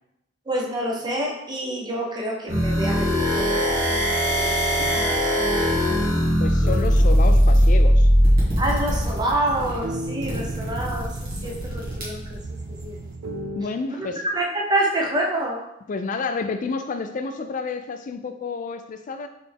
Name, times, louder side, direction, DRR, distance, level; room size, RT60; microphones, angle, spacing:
voice 1, 0.5-4.0 4.4-4.5 5.1-5.2 8.6-11.1 11.4-12.4 12.8-13.0 14.0-15.7, right 1 dB, 20° right, -1 dB, 0.6 m, -27 dB
sound 1, 2.5-8.4, equal, 60° right, 1.3 m, -18 dB
voice 2, 4.8-5.2 5.7-6.1 6.4-8.1 11.3-11.6 13.5-14.2 15.9-19.3, left 4 dB, 40° left, 8 dB, 0.3 m, -30 dB
sound 2, 6.6-12.8, equal, 45° right, 1.5 m, -30 dB
sound 3, 6.6-13.6, right 2 dB, 80° right, 0.5 m, -35 dB
4.1 x 3.3 x 3.4 m, 0.87 s
head